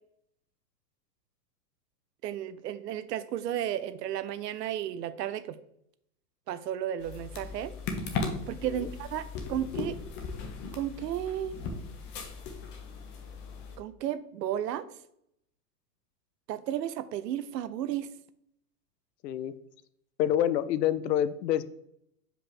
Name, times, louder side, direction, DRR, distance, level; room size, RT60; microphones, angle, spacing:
voice 1, 2.2-5.6 6.5-7.7 8.5-10.0 10.7-11.6 13.8-14.8 16.5-18.1, right 11 dB, 80° right, 14 dB, 0.7 m, -33 dB
sound 1, 7.0-13.8, left 4 dB, 25° left, 0.7 m, -37 dB
voice 2, 19.2-19.5 20.2-21.6, left 11 dB, 85° left, 14 dB, 0.7 m, -27 dB
6.0 x 5.0 x 3.2 m, 0.75 s
supercardioid pair, 145°, 48 cm